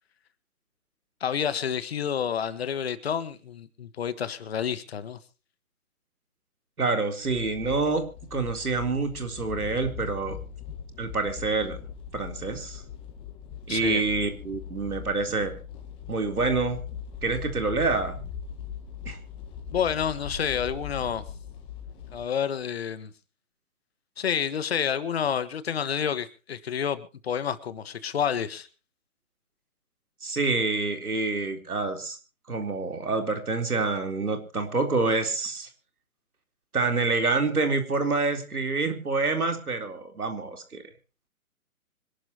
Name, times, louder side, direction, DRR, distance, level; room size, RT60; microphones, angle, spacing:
voice 1, 1.2-5.2 13.7-14.0 19.7-21.3 22.1-23.1 24.2-28.7, left 8 dB, 45° left, 13 dB, 1.6 m, -29 dB
voice 2, 6.8-8.0 8.3-10.4 11.0-11.8 12.1-12.8 13.7-15.6 16.1-16.8 17.2-18.2 19.1-19.2 30.2-32.2 32.5-35.7 36.7-40.8, right 3 dB, 85° right, 5 dB, 4.1 m, -27 dB
sound 1, 7.2-22.2, left 7 dB, 10° left, 1.8 m, -40 dB
25.5 x 12.5 x 3.0 m, 0.33 s
hypercardioid pair, 155°, 43 cm